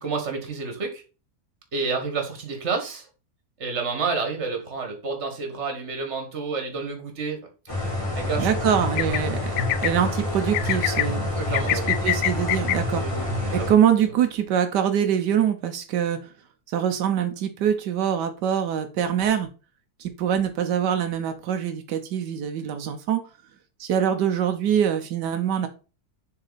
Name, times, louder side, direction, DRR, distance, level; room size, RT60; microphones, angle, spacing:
voice 1, 0.0-1.0 1.7-3.1 3.6-7.4 8.2-8.7 9.1-9.2 11.3-12.0 12.9-13.7, right 4 dB, 45° right, 4 dB, 1.8 m, -30 dB
sound 1, 7.7-13.7, left 1 dB, 20° left, 2.1 m, -28 dB
voice 2, 8.4-9.5 9.8-11.3 11.7-13.2 13.5-16.2 16.7-19.5 20.0-23.2 23.8-25.7, right 9 dB, 85° right, 7 dB, 1.4 m, -24 dB
sound 2, 9.0-9.2 9.6-9.9 10.5-11.0 11.5-12.8, left 14 dB, 85° left, 1.2 m, -24 dB
6.8 x 4.1 x 4.1 m, 0.33 s
omnidirectional pair, 1.8 m